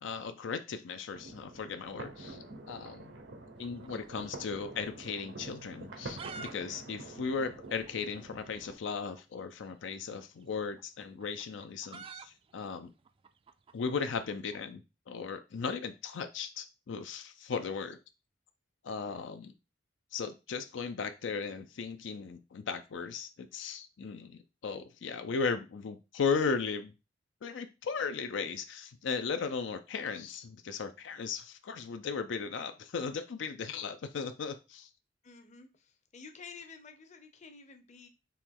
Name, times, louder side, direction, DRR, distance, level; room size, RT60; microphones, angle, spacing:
voice 1, 0.0-3.1 3.6-12.9 13.7-14.8 15.1-18.0 18.8-19.5 20.1-26.9 27.4-34.9, left 5 dB, 85° left, 8 dB, 0.4 m, -36 dB
sound 1, 1.1-8.8, right 2 dB, 85° right, 0.9 m, -47 dB
sound 2, 3.6-4.9 5.2-5.3 5.8-6.5 6.8-6.9 7.1-7.2 7.8-7.9 9.1-9.3 10.4-14.6, right 5 dB, 30° right, 0.3 m, -48 dB
voice 2, 35.2-38.1, left 5 dB, 40° left, 7 dB, 0.7 m, -51 dB
4.5 x 2.9 x 3.7 m, 0.28 s
head